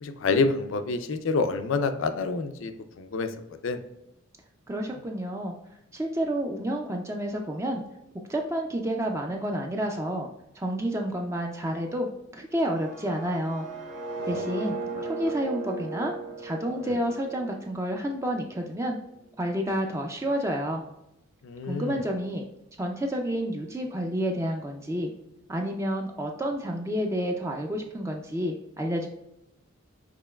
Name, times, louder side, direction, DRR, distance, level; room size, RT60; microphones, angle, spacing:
voice 1, 0.0-3.3 3.6-3.8 14.2-14.5 14.9-15.1 16.8-17.0 21.4-22.0, left 4 dB, 75° left, 8 dB, 0.4 m, -28 dB
voice 2, 4.7-5.6 5.9-7.8 8.3-10.3 10.5-13.7 14.3-14.8 15.0-19.0 19.4-20.8 21.7-22.4 22.8-25.1 25.5-29.1, equal, 15° right, 2 dB, 0.3 m, -30 dB
sound 1, 12.7-18.6, right 3 dB, 70° right, 1.1 m, -37 dB
6.6 x 3.0 x 2.3 m, 0.86 s
head